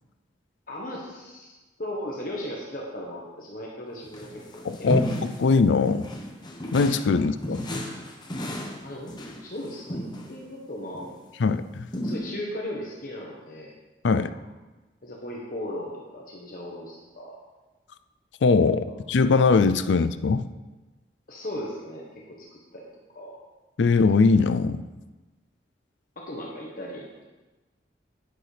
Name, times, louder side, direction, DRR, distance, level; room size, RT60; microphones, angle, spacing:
voice 1, 0.7-1.5 1.8-5.0 5.4-5.5 7.1-7.2 7.5-7.6 8.8-10.0 10.3-11.1 12.0-13.7 15.0-17.4 21.3-22.8 23.1-23.4 26.2-27.1, left 1 dB, 50° left, -3 dB, 1.3 m, -37 dB
sound 1, 4.0-5.5 5.9-7.1 7.4-10.3 10.9-11.2 11.9-12.2, equal, 25° left, 1.0 m, -33 dB
voice 2, 4.6-6.1 6.7-7.7 11.4-11.8 14.0-14.3 18.4-20.4 23.8-24.8, left 4 dB, 85° left, 12 dB, 0.4 m, -21 dB
10.0 x 9.8 x 3.4 m, 1.2 s
head